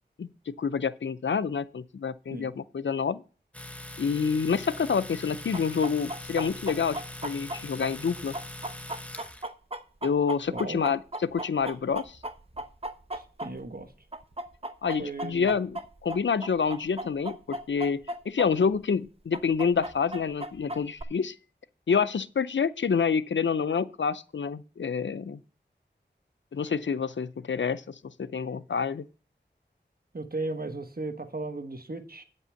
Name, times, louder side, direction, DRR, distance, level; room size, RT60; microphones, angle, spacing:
voice 1, 0.2-3.2 4.0-8.4 10.0-12.2 14.8-18.0 18.3-21.3 21.9-25.4 26.5-29.0, left 6 dB, 85° left, 0.5 m, -28 dB
Domestic sounds home sounds, 3.5-9.5, left 1 dB, 5° left, 1.0 m, -42 dB
Chicken rooster, 5.5-13.8 14.1-18.5 18.7-18.8 19.3-21.0, right 1 dB, 30° right, 0.9 m, -36 dB
voice 2, 10.5-10.8 13.1-13.9 15.0-15.5 30.1-32.2, right 2 dB, 55° right, 1.3 m, -36 dB
8.7 x 5.5 x 7.0 m
wide cardioid pair, 50°, 19 cm